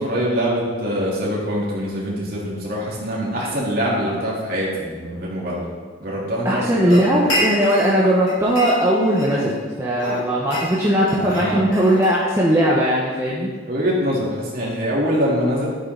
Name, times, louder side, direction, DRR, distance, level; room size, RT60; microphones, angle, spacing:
voice 1, 0.0-5.6 6.0-7.3 11.1-11.7 13.7-15.7, equal, 45° right, -6 dB, 3.7 m, -24 dB
voice 2, 6.4-13.5, equal, 15° right, -6 dB, 1.3 m, -19 dB
sound 1, 6.9-8.0 8.3-9.6 9.9-12.6, left 1 dB, 70° left, 4.1 m, -28 dB
12.5 x 9.5 x 4.1 m, 1.5 s
head